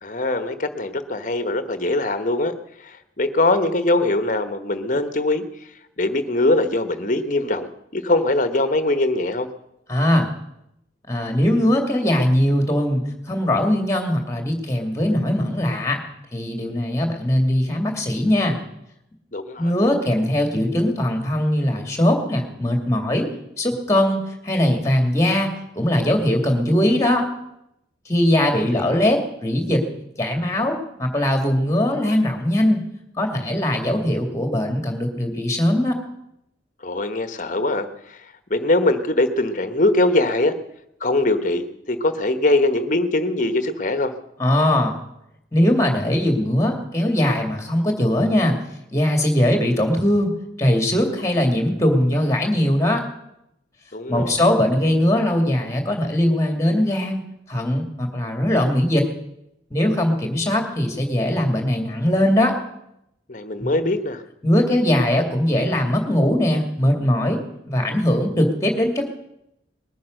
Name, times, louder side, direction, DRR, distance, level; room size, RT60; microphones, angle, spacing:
voice 1, 0.0-2.5 2.8-5.4 6.0-9.5 19.3-19.7 28.5-28.6 28.9-29.1 36.8-38.2 38.5-40.6 41.0-44.1 53.9-54.4 63.3-64.2, left 2 dB, 45° left, 10 dB, 1.2 m, -22 dB
voice 2, 9.9-10.3 11.1-16.0 16.3-18.6 19.6-23.3 23.6-25.5 25.8-27.3 28.1-29.8 30.2-32.8 33.2-36.0 44.4-45.0 45.5-48.6 48.9-50.3 50.6-53.0 54.1-57.2 57.5-59.0 59.7-62.6 63.6-63.7 64.4-67.4 67.7-69.1, left 1 dB, 15° left, 3 dB, 2.4 m, -20 dB
20.0 x 9.5 x 6.5 m, 0.81 s
head